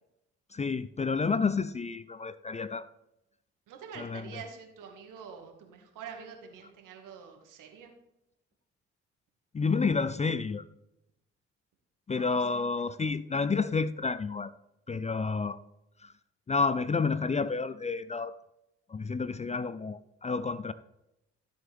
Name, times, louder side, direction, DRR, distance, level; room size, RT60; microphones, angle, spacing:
voice 1, 0.5-2.9 4.0-4.3 9.5-10.6 12.1-14.5 14.9-15.6 16.0-16.1 16.5-18.3 18.9-20.7, left 4 dB, 20° left, 15 dB, 0.5 m, -30 dB
voice 2, 3.7-7.9 12.1-12.6, right 7 dB, 65° right, 4 dB, 2.1 m, -46 dB
13.5 x 7.7 x 3.6 m, 0.87 s
hypercardioid pair, 45°, 33 cm